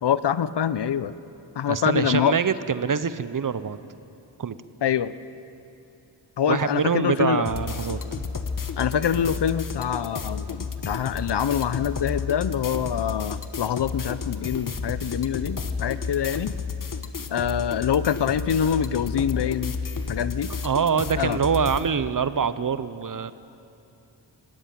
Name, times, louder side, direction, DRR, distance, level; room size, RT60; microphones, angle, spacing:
voice 1, 0.0-1.1 1.6-2.3 4.8-5.1 6.4-7.4 8.8-16.5 17.3-19.7 20.1-20.5 21.2-21.4, left 8 dB, 60° left, 15 dB, 0.8 m, -25 dB
voice 2, 1.7-3.8 4.4-4.6 6.5-8.0 20.6-23.3, right 6 dB, 45° right, 14 dB, 0.8 m, -24 dB
sound 1, 7.4-21.9, left 5 dB, 45° left, 1.3 m, -32 dB
19.0 x 17.5 x 9.2 m, 2.8 s
cardioid pair, 75°, 46 cm